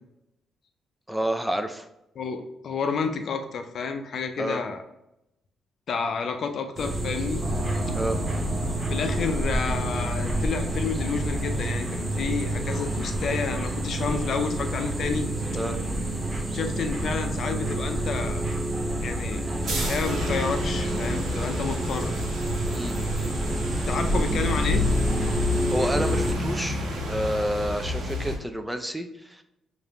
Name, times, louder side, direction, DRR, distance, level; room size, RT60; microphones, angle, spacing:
voice 1, 1.1-1.9 4.4-4.6 7.9-8.2 15.5-15.8 22.7-23.0 25.7-29.4, equal, 5° right, 7 dB, 0.5 m, -29 dB
voice 2, 2.2-4.8 5.9-7.4 8.9-15.3 16.5-18.4 19.0-22.1 23.9-24.8, left 5 dB, 60° left, 7 dB, 0.5 m, -30 dB
sound 1, 6.8-26.3, right 1 dB, 20° right, 0.9 m, -29 dB
sound 2, 7.4-27.2, right 1 dB, 45° right, 1.1 m, -37 dB
sound 3, 19.6-28.4, left 2 dB, 70° right, 0.9 m, -30 dB
4.8 x 2.6 x 3.0 m, 0.85 s
supercardioid pair, 70°, 0 cm